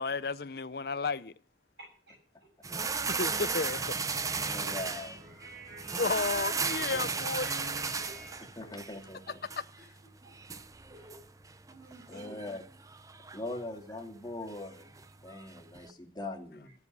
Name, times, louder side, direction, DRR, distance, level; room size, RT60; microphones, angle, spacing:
voice 1, 0.0-1.3 3.2-3.8 6.0-7.9, left 4 dB, 60° left, 0.7 m, -33 dB
voice 2, 1.8-2.5 3.1-7.1 7.4-8.5 8.8-9.1 9.5-9.9 10.2-10.6 10.9-11.2 11.7-12.4, right 1 dB, 70° right, 7.1 m, -51 dB
sound 1, 2.6-15.9, right 5 dB, 20° right, 0.6 m, -36 dB
voice 3, 4.3-5.2 6.6-7.2 8.6-9.4 12.1-12.6 13.3-16.7, left 2 dB, 25° left, 2.3 m, -42 dB
14.5 x 7.2 x 9.7 m
head